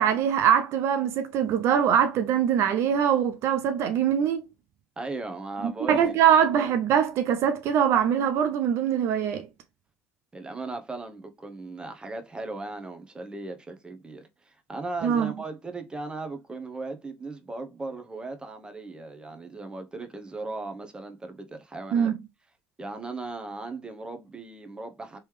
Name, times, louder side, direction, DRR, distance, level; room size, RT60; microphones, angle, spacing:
voice 1, 0.0-4.5 5.6-9.5 15.0-15.3 21.9-22.2, right 8 dB, 60° right, 0.5 m, -23 dB
voice 2, 5.0-6.2 10.3-22.1 22.8-25.2, right 3 dB, 15° right, 0.9 m, -37 dB
3.4 x 3.0 x 3.2 m
supercardioid pair, 90°, 5 cm